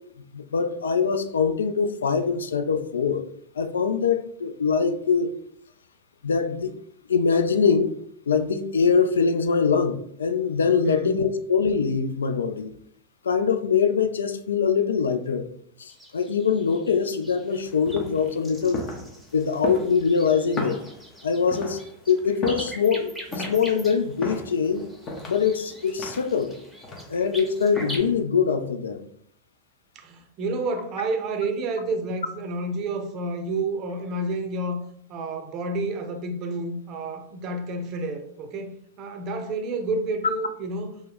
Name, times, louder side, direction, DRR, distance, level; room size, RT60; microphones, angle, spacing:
voice 1, 0.3-3.2 3.6-5.3 6.2-6.7 7.1-7.9 8.3-12.7 13.2-15.4 15.8-18.8 19.3-20.8 21.2-21.8 22.1-24.9 25.3-26.5 27.1-29.0, left 6 dB, 70° left, 9 dB, 0.3 m, -23 dB
voice 2, 10.9-11.3 18.7-19.0 29.9-34.8 35.1-40.9, right 2 dB, 35° right, 6 dB, 0.6 m, -30 dB
sound 1, 15.9-28.0, equal, ahead, 0.8 m, -43 dB
sound 2, 17.6-28.2, left 1 dB, 30° left, 0.6 m, -37 dB
3.3 x 2.1 x 3.3 m, 0.65 s
figure-of-eight pair, 90°, 0 cm